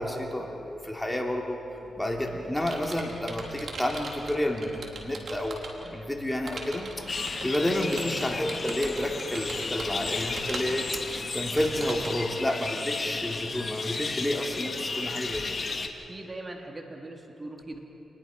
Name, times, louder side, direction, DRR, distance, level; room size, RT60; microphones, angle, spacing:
voice 1, 0.0-1.6 2.0-11.0 11.3-15.6, left 1 dB, 10° left, 1 dB, 3.0 m, -30 dB
Computer keyboard, 1.8-5.9 6.5-12.2, right 3 dB, 65° right, 3.5 m, -40 dB
sound 1, 7.1-15.9, left 3 dB, 45° left, 1.9 m, -34 dB
voice 2, 16.1-17.8, right 2 dB, 30° right, 2 dB, 3.3 m, -40 dB
28.5 x 21.0 x 5.3 m, 3.0 s
cardioid pair, 55°, 0 cm